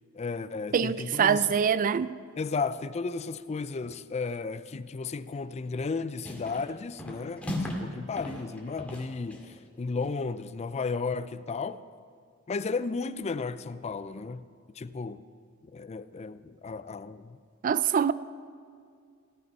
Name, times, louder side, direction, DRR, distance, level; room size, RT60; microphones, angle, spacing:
voice 1, 0.1-1.6 2.4-11.8 12.5-14.5 14.8-15.2 15.7-17.4, left 4 dB, 30° left, 0.4 m, -34 dB
voice 2, 0.7-2.1 17.6-18.1, right 7 dB, 40° right, 0.3 m, -24 dB
sound 1, 5.7-5.9 6.2-6.7 7.0-7.9 8.2-9.5, left 1 dB, 5° left, 2.0 m, -37 dB
16.5 x 12.0 x 5.4 m
head